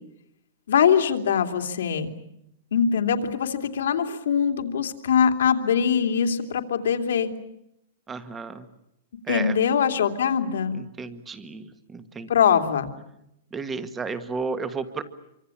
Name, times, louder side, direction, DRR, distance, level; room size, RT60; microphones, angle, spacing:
voice 1, 0.7-2.1 2.7-7.3 9.3-10.7 12.3-12.9, left 7 dB, 80° left, 6 dB, 2.9 m, -22 dB
voice 2, 8.1-8.6 9.3-9.5 11.0-11.6 11.9-12.3 13.5-15.0, right 4 dB, 10° right, 11 dB, 1.6 m, -32 dB
26.5 x 25.0 x 8.7 m, 0.81 s
hypercardioid pair, 165°, 0 cm